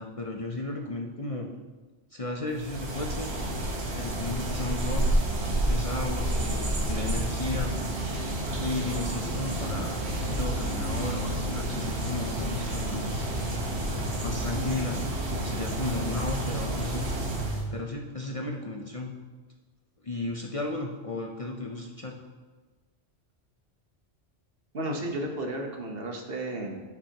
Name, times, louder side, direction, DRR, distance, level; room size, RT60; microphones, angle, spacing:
voice 1, 0.0-1.5 2.1-3.3 3.9-7.7 8.6-13.3 14.2-15.0 15.3-17.1 17.7-19.1 20.0-22.2, left 2 dB, 40° left, 1 dB, 0.6 m, -34 dB
sound 1, 2.5-17.6, right 1 dB, 80° right, 1.5 m, -30 dB
voice 2, 24.7-26.8, right 1 dB, 60° right, 2 dB, 1.3 m, -33 dB
13.0 x 6.0 x 2.9 m, 1.3 s
omnidirectional pair, 1.1 m